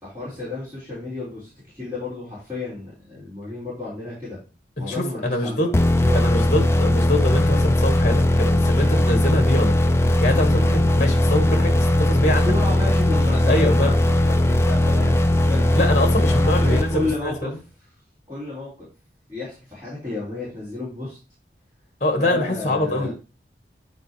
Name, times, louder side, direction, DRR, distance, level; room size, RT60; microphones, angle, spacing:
voice 1, 0.0-4.4 4.8-6.5 12.4-15.7 16.2-17.6 18.3-18.9 19.3-21.2 22.2-23.1, left 2 dB, 15° right, 4.7 m, -32 dB
voice 2, 4.8-5.7 6.1-9.8 10.2-12.5 13.5-13.9 15.7-17.6 22.0-23.1, left 1 dB, 40° left, 1.4 m, -24 dB
sound 1, 5.7-17.4, left 1 dB, 15° left, 0.4 m, -19 dB
10.0 x 4.8 x 3.2 m
head